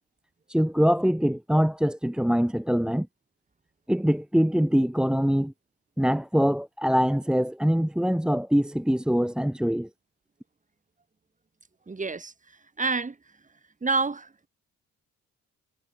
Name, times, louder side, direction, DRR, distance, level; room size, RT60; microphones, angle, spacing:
voice 1, 0.5-3.1 3.9-5.5 6.0-9.9, equal, 5° right, 1.5 m, -23 dB
voice 2, 11.9-13.2 13.8-14.5, right 4 dB, 25° right, 3.8 m, -29 dB
cardioid pair, 90°, 30 cm